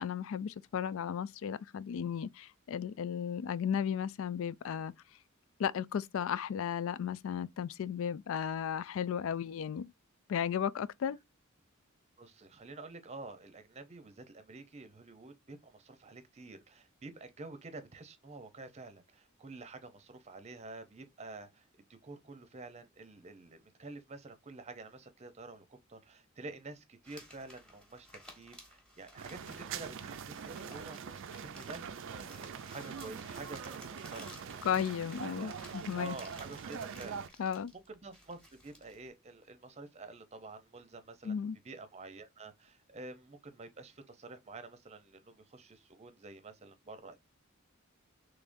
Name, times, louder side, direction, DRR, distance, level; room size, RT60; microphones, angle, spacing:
voice 1, 0.0-4.9 5.6-9.9 10.3-11.2 34.6-36.2 37.4-37.7 41.2-41.6, left 8 dB, 70° left, 0.3 m, -35 dB
voice 2, 12.2-21.7 22.0-34.7 35.4-35.6 35.9-41.4 41.6-47.2, right 3 dB, 30° right, 0.7 m, -49 dB
sound 1, 27.0-39.1, equal, 5° left, 1.2 m, -56 dB
sound 2, 29.2-37.3, right 7 dB, 65° right, 0.4 m, -43 dB
3.6 x 3.4 x 2.5 m
head